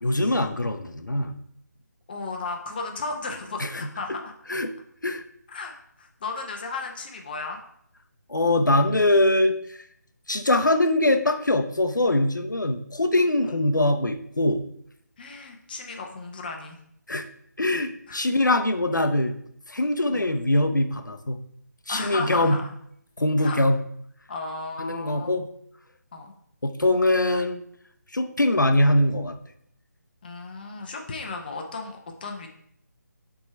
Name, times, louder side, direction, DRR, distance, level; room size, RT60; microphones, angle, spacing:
voice 1, 0.0-1.4 3.6-3.9 4.5-4.7 5.0-5.2 8.3-9.8 10.3-14.7 17.1-17.2 17.6-19.3 19.7-21.4 21.9-22.6 23.2-23.8 24.8-25.5 26.6-27.6 28.1-29.4, left 1 dB, 80° left, 7 dB, 0.8 m, -22 dB
voice 2, 2.1-4.3 5.5-7.6 15.2-16.8 18.1-18.2 20.1-20.3 21.9-22.7 23.4-23.6 24.3-25.4 26.1-26.3 30.2-32.5, left 3 dB, 30° left, 2 dB, 0.8 m, -35 dB
6.0 x 3.7 x 5.5 m, 0.70 s
figure-of-eight pair, 150°, 10 cm